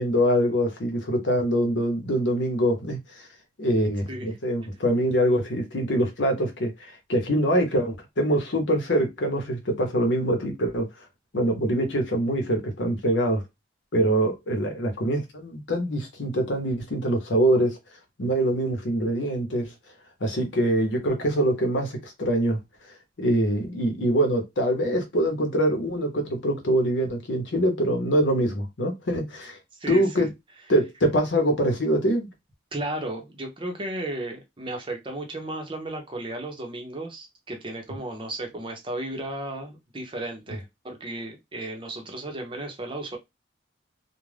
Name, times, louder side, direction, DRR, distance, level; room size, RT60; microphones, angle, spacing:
voice 1, 0.0-3.3 3.6-10.9 11.3-13.4 13.9-17.8 18.2-19.7 20.2-22.6 23.2-29.6 29.9-30.3 30.7-32.3, right 1 dB, 75° left, 0.8 m, -24 dB
voice 2, 32.7-43.2, right 1 dB, 30° right, 0.7 m, -34 dB
2.4 x 2.1 x 3.2 m
head